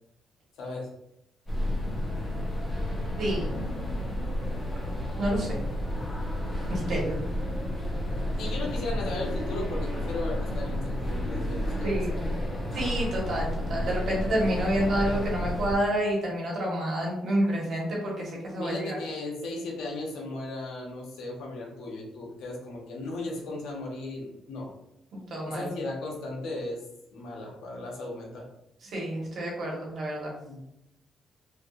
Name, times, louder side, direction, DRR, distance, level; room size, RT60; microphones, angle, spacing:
voice 1, 0.6-0.9 8.4-12.2 18.6-24.7 25.4-26.8 27.1-28.5 30.4-30.6, left 2 dB, 80° left, -1 dB, 1.0 m, -36 dB
sound 1, 1.5-15.7, left 1 dB, 25° left, 1.0 m, -31 dB
voice 2, 3.2-3.6 5.2-5.6 6.7-7.2 11.8-12.2 12.7-19.0 25.1-25.7 28.8-30.3, right 1 dB, 60° right, -3 dB, 1.3 m, -29 dB
3.3 x 2.7 x 2.5 m, 0.81 s
cardioid pair, 90°, 0 cm